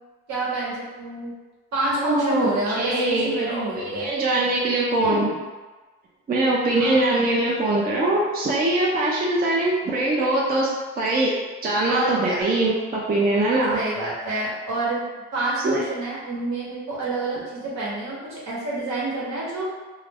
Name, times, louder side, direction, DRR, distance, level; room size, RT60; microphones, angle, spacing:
voice 1, 0.3-1.3 1.7-4.1 5.0-5.3 6.8-7.0 11.9-12.4 13.7-15.1 15.3-19.6, right 2 dB, 65° right, -6 dB, 1.0 m, -28 dB
voice 2, 2.0-5.3 6.3-10.7 11.0-11.3 11.6-13.8 15.6-15.8, right 2 dB, 30° right, -4 dB, 0.5 m, -22 dB
2.3 x 2.1 x 3.4 m, 1.3 s
cardioid pair, 90°, 30 cm